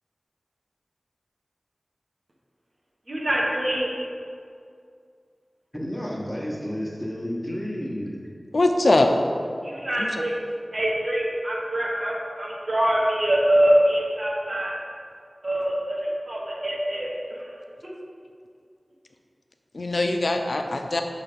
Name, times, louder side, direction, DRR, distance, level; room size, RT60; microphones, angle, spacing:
voice 1, 3.1-3.9 9.6-10.3 10.7-14.8 15.4-17.1 17.4-17.6, right 1 dB, 45° right, -4 dB, 1.3 m, -24 dB
voice 2, 5.7-8.2, equal, 10° left, -3 dB, 1.1 m, -31 dB
voice 3, 8.5-9.1 10.0-10.2 19.7-21.0, left 2 dB, 70° left, 5 dB, 0.5 m, -22 dB
6.1 x 3.3 x 5.3 m, 2.3 s
wide cardioid pair, 55°, 0 cm